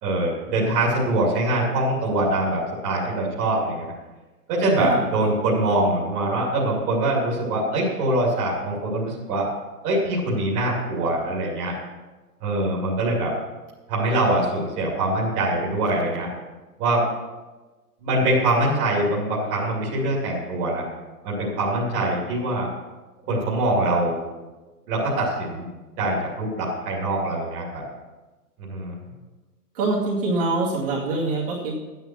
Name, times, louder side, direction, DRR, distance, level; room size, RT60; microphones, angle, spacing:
voice 1, 0.0-3.8 4.5-9.5 9.8-11.7 12.4-13.3 13.9-16.3 16.8-17.0 18.0-20.8 21.2-22.7 23.3-24.2 24.9-25.7 26.0-27.8 28.6-28.9, right 1 dB, 15° right, -6 dB, 2.5 m, -23 dB
voice 2, 4.8-5.3 29.7-31.7, right 3 dB, 35° right, -5 dB, 2.3 m, -25 dB
11.5 x 9.3 x 6.0 m, 1.2 s
hypercardioid pair, 170°, 47 cm